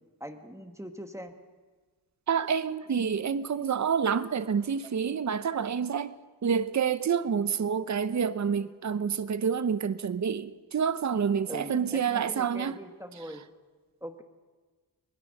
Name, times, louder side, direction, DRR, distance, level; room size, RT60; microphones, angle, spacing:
voice 1, 0.2-1.4 4.8-4.9 11.5-13.4 14.0-14.2, equal, 5° right, 1.4 m, -42 dB
voice 2, 2.3-6.1 6.4-12.7, right 7 dB, 45° right, 0.8 m, -28 dB
21.0 x 20.5 x 6.5 m
wide cardioid pair, 110°, 41 cm